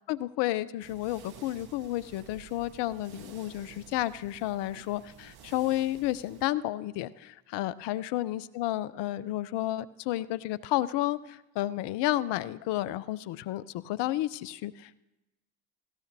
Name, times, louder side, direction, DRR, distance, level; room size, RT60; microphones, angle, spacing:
voice 1, 0.1-15.0, left 15 dB, 60° left, 17 dB, 0.6 m, -31 dB
sound 1, 0.8-6.4, right 8 dB, 50° right, 1.3 m, -52 dB
18.0 x 16.0 x 2.7 m, 1.0 s
hypercardioid pair, 60°, 47 cm